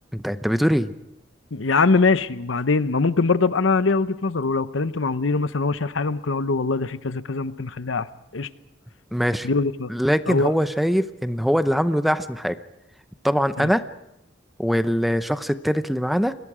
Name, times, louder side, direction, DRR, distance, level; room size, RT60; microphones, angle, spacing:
voice 1, 0.1-0.9 9.1-9.5 9.9-12.6 13.2-13.8 14.6-16.4, equal, ahead, 11 dB, 0.7 m, -22 dB
voice 2, 1.5-8.1 8.3-8.5 9.4-9.9 10.3-10.5 13.6-13.7, left 4 dB, 85° left, 14 dB, 0.8 m, -22 dB
28.5 x 22.0 x 4.9 m, 0.82 s
head